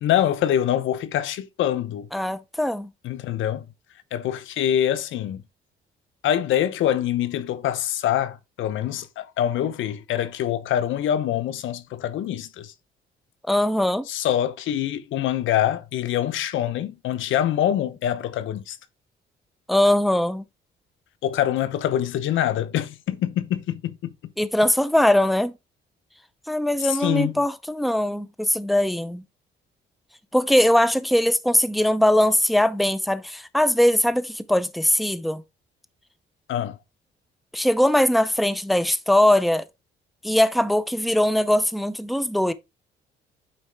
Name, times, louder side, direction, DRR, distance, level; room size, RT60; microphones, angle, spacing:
voice 1, 0.0-2.1 3.0-3.7 4.1-5.4 6.2-12.7 14.1-18.8 21.2-24.1 26.8-27.4 36.5-36.8, left 11 dB, 80° left, 0.9 m, -25 dB
voice 2, 2.1-2.9 13.5-14.1 19.7-20.4 24.4-25.5 26.5-29.2 30.3-35.4 37.5-39.6 40.2-42.5, left 1 dB, ahead, 0.6 m, -21 dB
8.9 x 4.2 x 3.4 m
cardioid pair, 90°, 20 cm